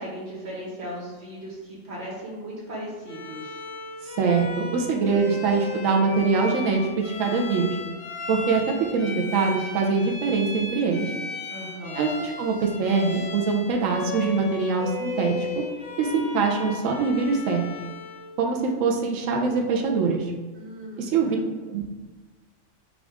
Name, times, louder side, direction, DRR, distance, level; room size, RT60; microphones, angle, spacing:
voice 1, 0.0-3.6 11.5-12.2 20.5-21.4, equal, 55° right, -4 dB, 1.4 m, -37 dB
Bowed string instrument, 3.1-18.3, left 3 dB, 40° left, 0.6 m, -36 dB
voice 2, 4.0-7.8 8.3-11.1 11.9-15.5 16.0-17.6 18.4-20.3 21.0-21.4 21.7-21.8, right 4 dB, 90° right, 1 dB, 1.0 m, -23 dB
5.1 x 2.4 x 3.4 m, 1.3 s
omnidirectional pair, 1.3 m